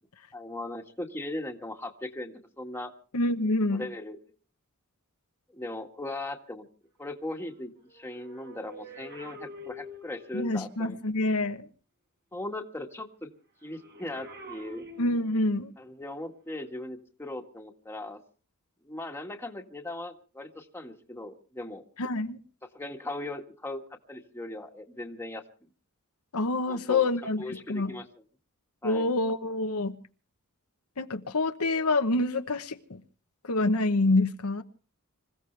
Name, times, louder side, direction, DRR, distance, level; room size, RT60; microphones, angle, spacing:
voice 1, 0.3-2.9 3.7-4.2 5.5-6.7 7.0-11.0 12.3-13.3 13.6-14.8 15.8-18.2 18.9-21.8 22.7-23.8 24.1-25.4 26.7-27.0 27.4-28.0 28.8-29.1, left 2 dB, 10° left, 1.7 m, -38 dB
voice 2, 3.1-3.8 10.3-11.7 15.0-15.7 22.0-22.4 26.3-27.9 28.8-30.0 31.0-33.0 33.5-34.6, left 2 dB, 85° left, 1.1 m, -27 dB
sound 1, 7.8-10.5 13.7-15.6 16.5-16.7, left 1 dB, 50° right, 5.8 m, -46 dB
26.0 x 15.5 x 3.4 m
head